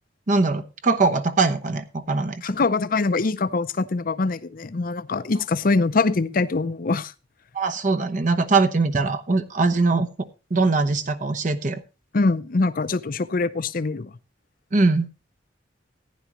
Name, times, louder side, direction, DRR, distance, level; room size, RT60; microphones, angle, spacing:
voice 1, 0.3-2.4 7.5-10.1 10.5-11.8 14.7-15.1, right 3 dB, 45° right, 0.9 m, -21 dB
voice 2, 2.4-7.1 12.1-14.1, left 3 dB, 50° left, 0.6 m, -23 dB
14.5 x 10.5 x 3.0 m
head